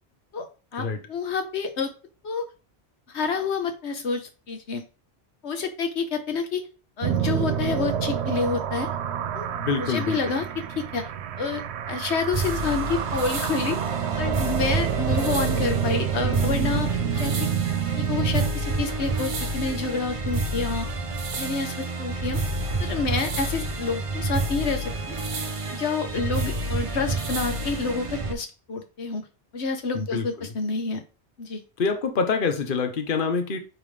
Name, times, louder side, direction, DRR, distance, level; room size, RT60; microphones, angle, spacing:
voice 1, 0.7-1.9 2.2-2.5 3.1-4.8 5.4-6.6 7.0-8.9 9.3-9.5 9.8-10.5 10.9-11.1 11.4-13.8 14.2-17.5 17.9-20.9 21.4-22.4 22.8-24.9 25.7-29.2 29.5-31.0 31.4-31.6, left 4 dB, 90° left, 6 dB, 1.4 m, -28 dB
sound 1, 7.0-18.5, right 8 dB, 80° right, 0.9 m, -28 dB
voice 2, 9.6-10.4 29.9-30.5 31.8-33.6, left 5 dB, 55° left, 6 dB, 1.1 m, -26 dB
sound 2, 12.3-28.3, right 2 dB, 35° right, 0.7 m, -29 dB
9.1 x 3.6 x 3.3 m, 0.34 s
omnidirectional pair, 1.1 m